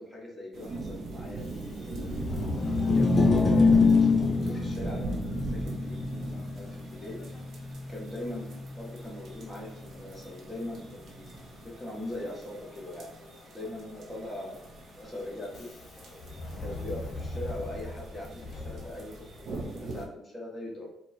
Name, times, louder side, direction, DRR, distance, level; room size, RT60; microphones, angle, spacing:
voice 1, 0.0-1.4 1.8-2.3 2.9-6.0 6.5-7.3 7.9-13.1 13.4-14.6 14.9-15.7 16.6-20.9, left 1 dB, 5° left, -4 dB, 1.5 m, -40 dB
sound 1, 0.5-20.1, right 2 dB, 65° right, 0.8 m, -40 dB
Subway metro underground, 1.3-19.6, left 2 dB, 55° left, 1.1 m, -43 dB
sound 2, 2.5-8.9, left 4 dB, 30° left, 0.5 m, -25 dB
4.5 x 2.4 x 4.3 m, 0.78 s
cardioid pair, 90°, 0 cm